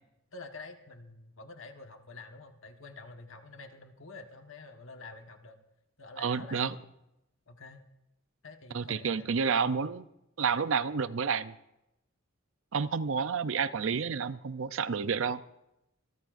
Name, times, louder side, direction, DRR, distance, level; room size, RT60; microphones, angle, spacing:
voice 1, 0.3-5.6 6.0-7.0 7.5-7.9 8.4-9.8, left 3 dB, 70° left, 5 dB, 1.4 m, -48 dB
voice 2, 6.2-6.7 8.7-10.0 10.4-11.6 12.7-15.4, right 6 dB, 70° right, 14 dB, 0.6 m, -30 dB
26.0 x 14.0 x 2.6 m, 0.87 s
head